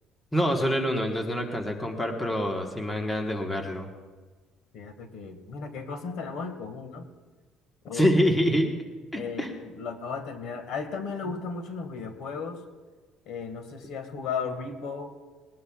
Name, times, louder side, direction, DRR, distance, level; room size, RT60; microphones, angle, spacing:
voice 1, 0.3-3.9 7.9-8.7 9.1-9.5, equal, 10° left, 2 dB, 1.2 m, -26 dB
voice 2, 4.7-7.1 7.8-8.1 9.1-12.6 13.2-15.1, left 5 dB, 65° left, 7 dB, 1.7 m, -35 dB
20.5 x 18.5 x 2.3 m, 1.4 s
cardioid pair, 160°, 0 cm